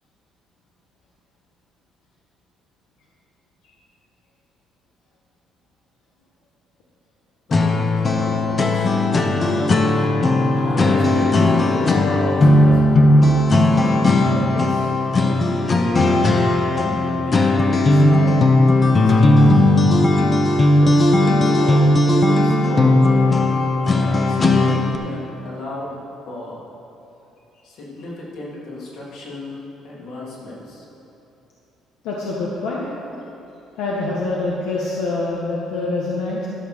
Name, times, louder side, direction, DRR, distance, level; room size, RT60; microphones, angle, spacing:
voice 1, 7.5-9.8 10.5-13.1 14.2-15.9 16.6-20.3 20.8-23.2 23.7-26.0 26.3-26.6 27.6-30.8, left 1 dB, 65° left, -5 dB, 2.8 m, -34 dB
sound 1, 7.5-25.0, left 2 dB, 25° left, 0.7 m, -16 dB
voice 2, 32.0-32.9 33.8-36.5, left 2 dB, 90° left, -4 dB, 1.3 m, -25 dB
12.5 x 5.9 x 6.6 m, 2.9 s
cardioid pair, 140°, 0 cm